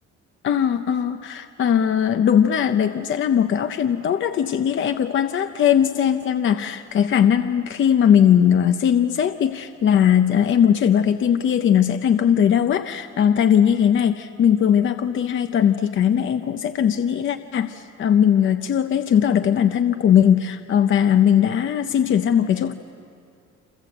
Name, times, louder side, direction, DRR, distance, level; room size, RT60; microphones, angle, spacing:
voice 1, 0.4-22.7, left 9 dB, 40° left, 8 dB, 0.7 m, -19 dB
28.0 x 27.0 x 7.9 m, 2.4 s
cardioid pair, 170°, 29 cm